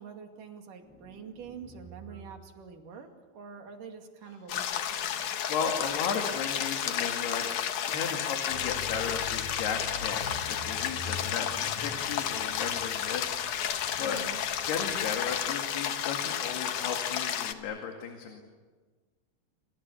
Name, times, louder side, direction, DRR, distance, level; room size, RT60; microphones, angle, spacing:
voice 1, 0.0-5.3 14.0-14.4, right 6 dB, 60° right, 4 dB, 3.8 m, -46 dB
sound 1, 0.8-2.6, right 6 dB, ahead, 3.5 m, -51 dB
sound 2, 4.5-17.5, left 9 dB, 65° left, 2.5 m, -32 dB
voice 2, 5.5-13.5 14.0-14.2 14.7-18.4, left 6 dB, 85° left, 3 dB, 4.2 m, -35 dB
Accelerating revving vroom, 8.5-15.4, left 3 dB, 45° left, 8.0 m, -44 dB
29.0 x 27.5 x 7.1 m, 1.4 s
omnidirectional pair, 4.5 m